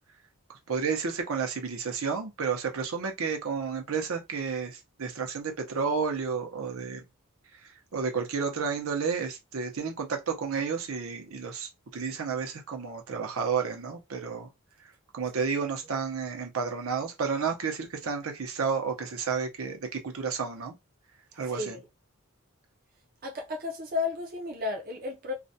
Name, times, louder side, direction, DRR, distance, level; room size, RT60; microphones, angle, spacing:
voice 1, 0.5-7.0 7.5-14.5 14.8-20.8 21.4-21.7, right 5 dB, 80° right, 0.7 m, -31 dB
voice 2, 21.3-21.9 23.2-25.3, left 4 dB, 45° right, 0.4 m, -33 dB
2.4 x 2.1 x 2.7 m
head